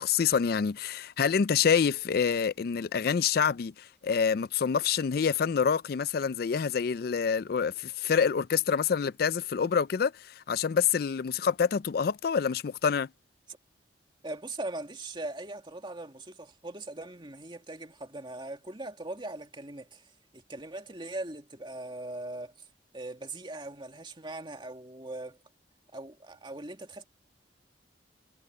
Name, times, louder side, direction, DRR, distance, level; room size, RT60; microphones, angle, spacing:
voice 1, 0.0-13.1, left 6 dB, 55° left, 0.4 m, -27 dB
voice 2, 14.2-22.7 22.9-25.4 25.9-27.0, right 2 dB, 25° right, 2.3 m, -40 dB
head